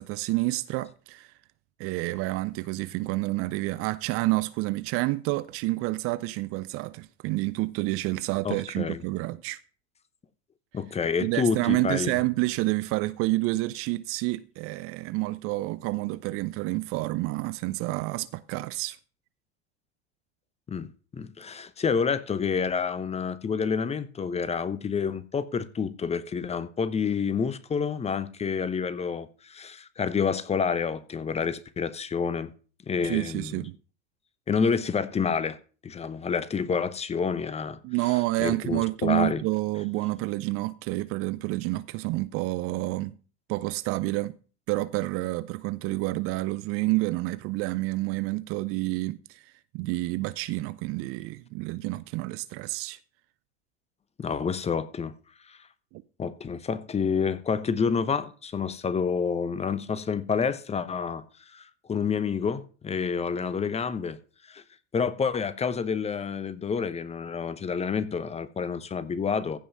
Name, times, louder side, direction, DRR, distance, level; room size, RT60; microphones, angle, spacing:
voice 1, 0.0-1.3 1.8-9.6 11.2-19.0 33.0-33.8 37.8-43.1 43.5-44.3 44.7-49.4 49.7-53.0 55.9-56.0, right 20 dB, 40° right, 0.5 m, -29 dB
voice 2, 8.4-9.0 10.7-12.1 20.7-32.5 32.9-33.6 34.5-35.6 35.8-37.8 38.4-39.4 54.2-55.1 55.5-55.6 56.2-61.2 61.5-64.2 64.5-64.6 64.9-69.6, left 6 dB, 20° left, 0.9 m, -28 dB
15.0 x 5.5 x 5.4 m
hypercardioid pair, 85°, 34 cm